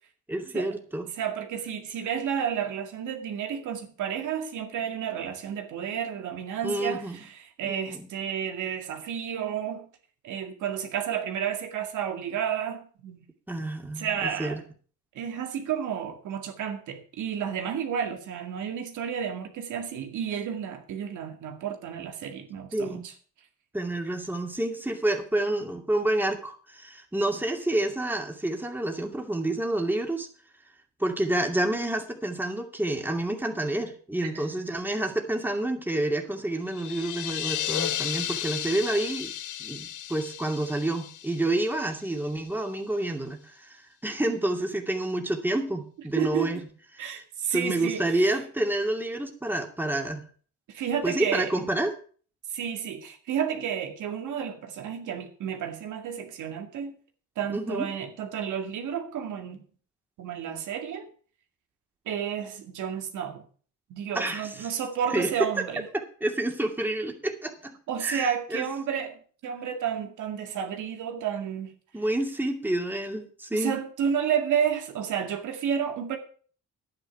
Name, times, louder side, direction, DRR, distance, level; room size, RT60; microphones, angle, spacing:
voice 1, 0.3-1.1 6.6-7.2 7.6-8.1 13.5-14.6 22.7-23.0 23.7-30.3 31.0-39.3 39.6-46.6 47.0-47.2 47.5-50.2 51.0-51.9 57.5-57.9 64.2-64.5 65.1-65.3 65.9-67.8 68.0-68.6 71.9-73.8, right 1 dB, 5° right, 2.4 m, -29 dB
voice 2, 1.1-9.9 10.2-13.3 14.0-14.6 15.1-23.1 34.2-34.5 46.2-46.6 47.0-48.3 50.7-51.6 52.5-56.9 57.4-59.6 60.2-61.1 62.1-63.4 63.9-65.9 67.9-71.7 73.5-76.2, right 8 dB, 80° right, 2.1 m, -31 dB
sound 1, 36.7-42.3, left 11 dB, 80° left, 1.1 m, -34 dB
10.5 x 9.6 x 6.0 m
cardioid pair, 90°, 30 cm